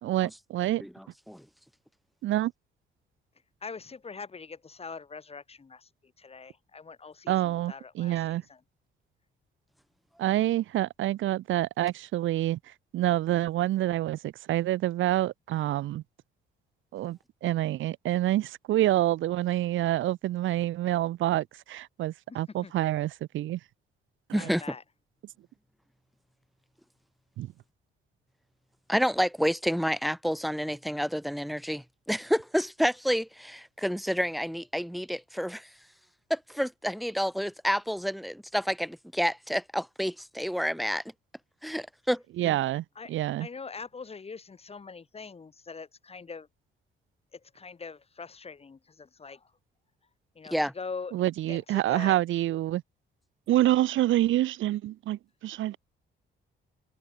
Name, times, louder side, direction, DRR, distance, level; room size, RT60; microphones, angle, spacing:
voice 1, 0.0-0.8 2.2-2.5 7.3-8.4 10.2-12.6 12.9-16.0 16.9-23.6 24.3-24.4 27.4-27.5 42.4-43.5 51.1-52.8 53.5-55.8, right 14 dB, 80° right, 1.0 m, -27 dB
voice 2, 0.8-1.4 24.3-24.6 28.9-35.7 36.3-41.0 41.6-42.2 50.5-50.7, equal, ahead, 1.0 m, -29 dB
voice 3, 3.6-5.9 6.2-8.6 22.3-22.7 24.4-24.8 43.0-43.1 43.4-46.5 47.3-49.4 50.4-51.2 51.5-52.2, left 5 dB, 30° left, 2.0 m, -43 dB
cardioid pair, 90°, 20 cm